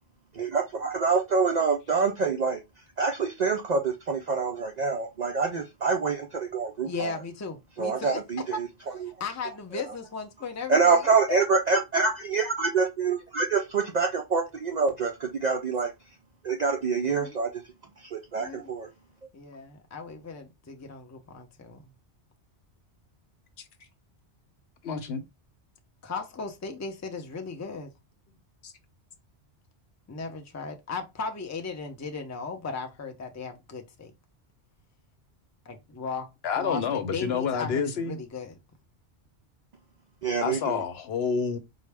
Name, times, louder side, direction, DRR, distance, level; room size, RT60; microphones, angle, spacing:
voice 1, 0.3-2.6 3.0-7.2 7.8-8.7 9.0-9.1 10.7-15.9 16.4-17.5 18.0-18.9 40.2-40.8, right 4 dB, 60° right, 0.4 m, -26 dB
voice 2, 6.8-8.2 8.5-8.6 9.0-11.4 17.1-17.4 18.4-18.7 19.3-21.8 26.0-27.9 30.1-34.1 35.7-36.3 36.6-38.6, left 4 dB, 25° left, 0.3 m, -36 dB
voice 3, 24.8-25.2 28.6-28.7 36.4-38.2 40.4-41.6, left 6 dB, 65° left, 0.8 m, -28 dB
4.5 x 2.1 x 3.3 m
omnidirectional pair, 1.2 m